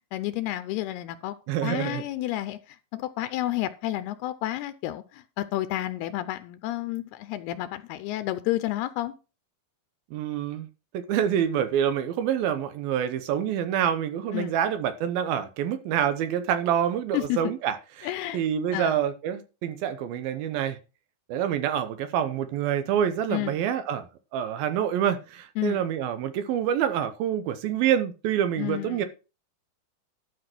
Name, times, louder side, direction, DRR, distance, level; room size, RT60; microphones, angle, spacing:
voice 1, 0.1-1.3 1.6-2.6 2.9-9.1 14.3-14.6 17.1-17.4 18.0-18.4 18.7-18.9 23.3-23.6 25.6-25.8 28.6-29.1, left 15 dB, 80° left, 2.6 m, -30 dB
voice 2, 1.5-2.0 10.1-10.7 10.9-20.8 21.3-24.1 24.3-29.1, right 9 dB, 75° right, 2.5 m, -27 dB
12.5 x 5.3 x 5.9 m
omnidirectional pair, 4.6 m